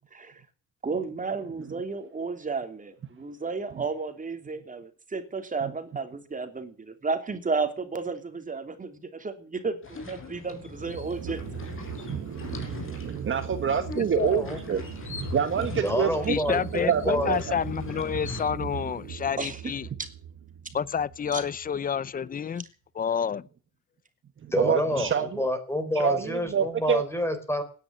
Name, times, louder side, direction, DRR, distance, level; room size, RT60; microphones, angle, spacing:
voice 1, 0.8-11.4 15.6-15.7 19.4-19.6 21.3-21.4 24.9-25.0, right 4 dB, 25° right, 3.0 m, -33 dB
sound 1, 9.8-18.4, left 4 dB, 45° left, 5.9 m, -40 dB
sound 2, 10.6-22.0, right 9 dB, 70° right, 1.4 m, -39 dB
voice 2, 12.1-14.8 15.3-17.4 24.6-25.3 26.0-27.0, right 7 dB, 40° right, 1.7 m, -27 dB
voice 3, 14.0-14.4 16.3-19.9 20.7-22.7 22.9-23.5, left 7 dB, 30° left, 0.7 m, -29 dB
voice 4, 15.8-17.3 24.5-27.6, left 1 dB, 10° left, 4.0 m, -28 dB
17.5 x 10.5 x 7.6 m
cardioid pair, 130°, 30 cm